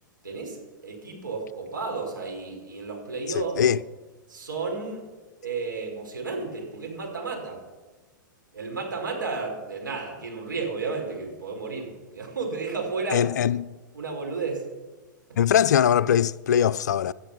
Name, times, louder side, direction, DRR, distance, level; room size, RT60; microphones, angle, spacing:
voice 1, 0.2-3.6 4.3-5.1 5.4-7.6 8.5-13.3 13.9-14.7 15.3-15.4, right 4 dB, 75° right, 4.8 m, -32 dB
voice 2, 3.3-3.8 13.1-13.7 15.4-17.1, left 9 dB, 60° left, 0.4 m, -21 dB
17.5 x 12.0 x 6.1 m
figure-of-eight pair, 100°, 11 cm